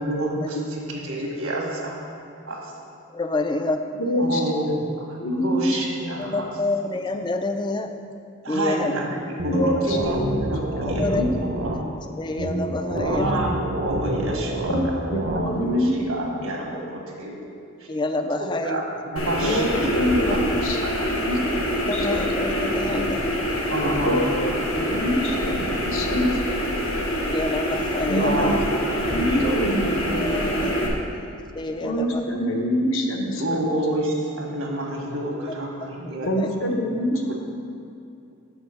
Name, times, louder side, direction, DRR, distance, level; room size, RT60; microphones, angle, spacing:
voice 1, 0.0-2.0 2.5-2.7 4.2-6.5 8.4-11.8 12.9-14.9 15.4-17.5 17.8-17.9 18.4-20.4 20.8-21.1 23.7-24.3 28.2-28.6 28.9-29.7 30.0-30.7 33.4-36.3, right 1 dB, 75° right, 0 dB, 1.4 m, -29 dB
voice 2, 3.1-3.8 6.2-7.9 8.5-8.9 11.0-11.2 11.7-11.8 12.2-13.4 17.9-18.8 20.3-20.4 21.8-23.2 23.8-24.1 27.2-28.6 30.2-32.2 35.8-36.5, left 2 dB, 20° left, 7 dB, 0.3 m, -28 dB
voice 3, 4.0-4.4 5.2-5.6 9.5-10.0 10.8-11.3 14.7-14.8 15.1-15.9 19.4-19.7 19.9-20.8 21.2-21.4 21.9-22.2 24.0-24.2 24.8-26.6 28.1-28.5 29.1-29.8 31.8-33.4 36.3-37.3, equal, 70° left, 1 dB, 0.9 m, -25 dB
sound 1, 9.4-11.8 12.4-15.4, right 1 dB, 50° right, 0.7 m, -28 dB
sound 2, 19.2-30.9, equal, 85° left, 1.2 m, -25 dB
6.2 x 5.0 x 6.4 m, 2.6 s
head